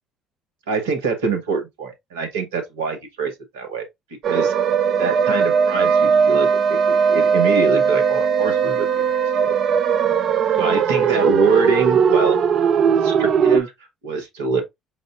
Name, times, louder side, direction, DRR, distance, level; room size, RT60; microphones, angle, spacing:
voice 1, 0.7-3.9 4.3-4.5 5.0-9.1 9.4-9.5 10.6-12.4 13.0-13.7 14.0-14.6, right 4 dB, 85° right, 1.0 m, -24 dB
sound 1, 4.2-13.6, right 6 dB, 55° right, 0.5 m, -18 dB
5.1 x 3.5 x 2.4 m
hypercardioid pair, 55°, 0 cm